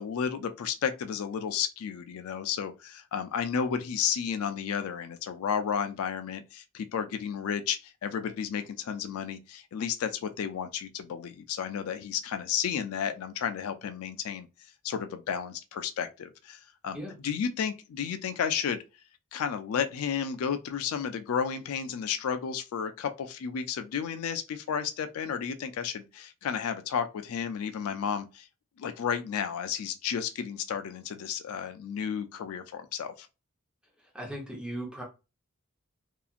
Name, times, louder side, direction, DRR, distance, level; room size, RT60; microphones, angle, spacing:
voice 1, 0.0-14.5 14.8-17.0 17.2-18.8 19.3-28.5 28.8-33.3, left 7 dB, 75° left, 0.3 m, -32 dB
voice 2, 34.1-35.0, right 1 dB, 5° right, 0.8 m, -37 dB
2.8 x 2.4 x 2.4 m
head